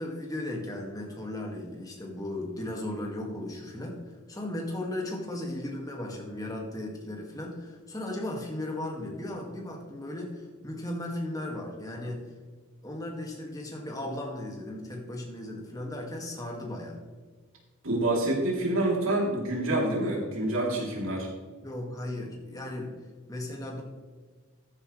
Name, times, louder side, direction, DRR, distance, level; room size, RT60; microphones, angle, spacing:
voice 1, 0.0-4.0 4.3-12.2 12.8-17.0 21.6-22.9 23.3-23.8, left 1 dB, 15° left, 0 dB, 2.1 m, -36 dB
voice 2, 17.8-21.3, right 1 dB, 75° right, -2 dB, 3.4 m, -27 dB
13.5 x 10.5 x 3.3 m, 1.5 s
head